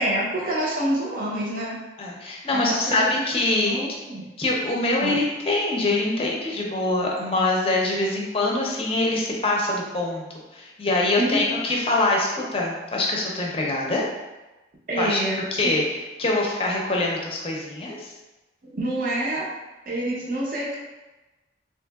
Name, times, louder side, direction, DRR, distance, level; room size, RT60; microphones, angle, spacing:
voice 1, 0.0-1.8 2.5-3.1 3.5-4.3 5.0-5.2 11.2-11.6 14.9-15.4 18.7-19.5 19.9-20.8, right 1 dB, 50° right, -5 dB, 0.7 m, -27 dB
voice 2, 2.0-3.8 4.4-10.2 10.5-14.1 15.0-15.2 15.5-18.1, left 2 dB, 30° left, -2 dB, 0.5 m, -24 dB
3.6 x 2.8 x 2.3 m, 1.1 s
head